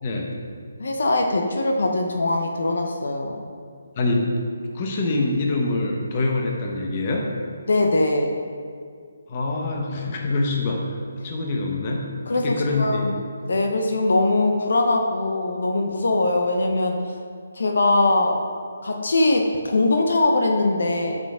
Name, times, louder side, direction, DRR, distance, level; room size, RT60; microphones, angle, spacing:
voice 1, 0.8-3.4 7.7-8.4 12.3-13.1 13.4-17.0 17.5-18.4 18.8-21.2, left 2 dB, 75° left, 3 dB, 0.9 m, -21 dB
voice 2, 3.9-4.4 4.7-7.3 9.3-12.0 12.3-13.0, left 2 dB, 30° left, 0 dB, 1.1 m, -25 dB
9.1 x 6.7 x 3.7 m, 2.1 s
hypercardioid pair, 160°, 0 cm